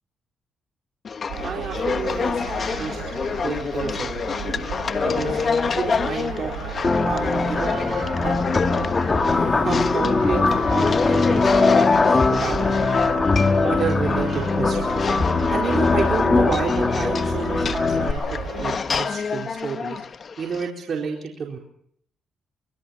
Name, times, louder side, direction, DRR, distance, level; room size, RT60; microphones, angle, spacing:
sound 1, 1.0-20.7, left 5 dB, 45° left, 1.2 m, -28 dB
sound 2, 1.3-18.8, right 7 dB, 85° right, 7.5 m, -34 dB
voice 1, 1.4-2.4 2.7-3.0 3.4-4.1 5.2-5.4 5.7-6.6 7.0-7.7 8.2-8.4 9.3-12.8 13.6-15.1 15.5-20.0 20.4-21.6, right 5 dB, 50° right, 0 dB, 4.4 m, -30 dB
sound 3, 6.8-18.1, left 3 dB, 30° left, 2.3 m, -21 dB
25.5 x 22.5 x 5.9 m, 0.68 s
cardioid pair, 90°, 0 cm